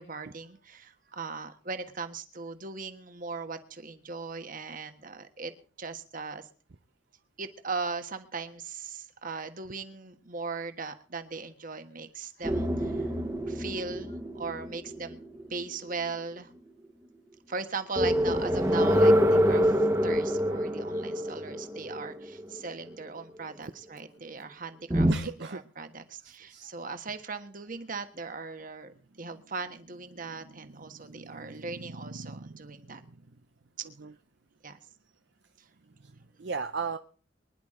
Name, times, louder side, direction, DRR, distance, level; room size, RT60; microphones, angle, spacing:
voice 1, 0.0-5.5 5.8-6.5 7.4-13.1 13.5-15.2 15.5-16.5 17.5-33.0 33.8-33.9 34.6-34.8 35.6-35.7, right 4 dB, 45° right, 8 dB, 1.4 m, -39 dB
sound 1, 12.4-15.9 18.0-22.6 24.9-25.1, equal, 15° right, 1.3 m, -26 dB
voice 2, 25.1-25.6 26.5-26.7 30.4-33.2 34.0-34.1 36.0-36.1 36.4-37.0, right 4 dB, 60° right, 8 dB, 0.7 m, -39 dB
24.0 x 10.5 x 3.8 m, 0.39 s
head